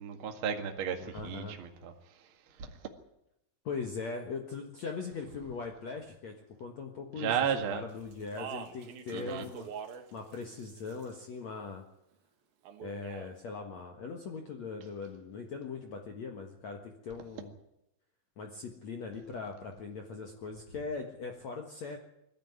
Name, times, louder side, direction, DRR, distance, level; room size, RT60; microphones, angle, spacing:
voice 1, 0.0-1.9 2.6-2.7 7.1-7.8 9.1-9.4, right 8 dB, 80° right, 4 dB, 1.1 m, -33 dB
voice 2, 1.0-1.6 3.6-9.7 10.1-11.8 12.8-17.6 18.4-22.0, left 4 dB, 80° left, 3 dB, 1.5 m, -40 dB
Speech, 8.1-10.1 10.3-11.2 12.6-13.3, right 8 dB, 60° right, 2.8 m, -44 dB
21.0 x 15.5 x 9.4 m, 0.83 s
omnidirectional pair, 5.8 m